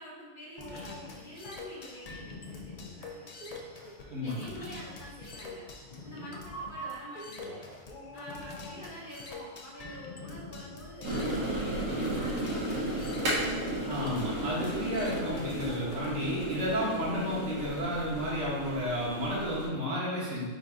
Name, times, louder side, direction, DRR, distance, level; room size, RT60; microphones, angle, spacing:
voice 1, 0.0-3.3 4.2-5.6 6.0-7.6 8.1-13.5, equal, 50° left, -5 dB, 0.8 m, -47 dB
sound 1, 0.6-16.1, left 2 dB, 80° left, 0.3 m, -44 dB
voice 2, 4.1-4.4 13.9-20.4, equal, 60° right, -7 dB, 1.5 m, -32 dB
sound 2, 11.0-19.7, right 1 dB, 85° right, 1.6 m, -34 dB
4.0 x 2.6 x 4.6 m, 1.4 s
omnidirectional pair, 1.3 m